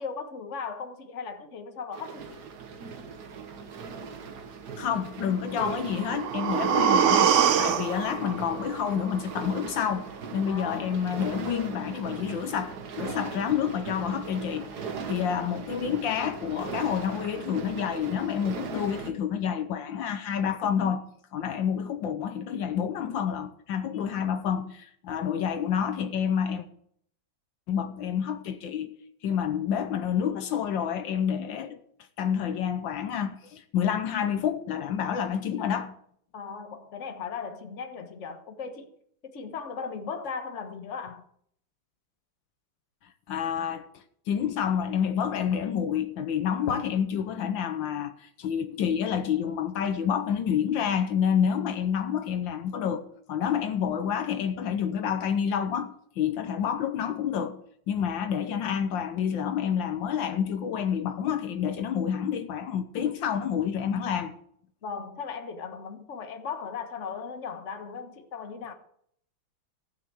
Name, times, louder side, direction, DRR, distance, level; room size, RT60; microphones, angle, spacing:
voice 1, 0.0-2.4 10.5-10.9 36.3-38.9 39.2-41.2 64.8-68.7, left 5 dB, 40° left, 1.5 m, -37 dB
sound 1, 1.9-19.1, right 5 dB, 60° right, 1.7 m, -39 dB
voice 2, 4.8-7.3 7.6-21.0 21.3-26.7 27.7-28.9 29.2-31.8 32.2-35.9 43.3-57.6 57.9-64.3, left 8 dB, 75° left, 1.5 m, -28 dB
sound 2, 5.7-9.7 10.1-10.2, right 8 dB, 75° right, 0.6 m, -25 dB
16.0 x 5.9 x 8.1 m
omnidirectional pair, 2.1 m